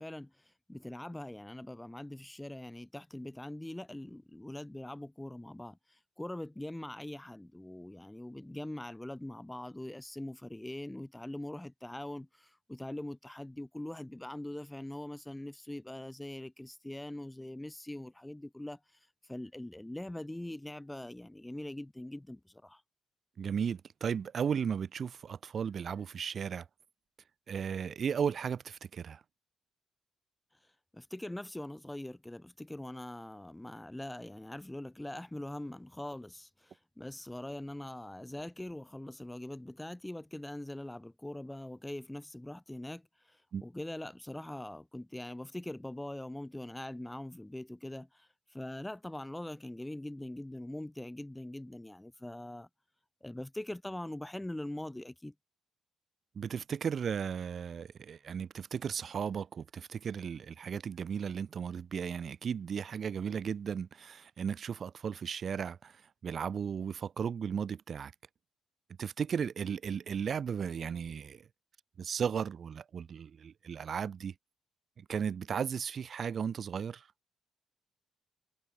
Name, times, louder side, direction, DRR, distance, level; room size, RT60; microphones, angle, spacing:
voice 1, 0.0-18.8 19.3-22.8 30.9-52.7 53.2-55.3, left 1 dB, 10° left, 6.9 m, -42 dB
voice 2, 23.4-26.6 27.5-29.2 43.5-43.6 56.3-66.0 66.2-68.1 69.0-71.4 72.0-74.3 75.0-77.0, right 7 dB, 50° right, 1.3 m, -35 dB
cardioid pair, 90°, 0 cm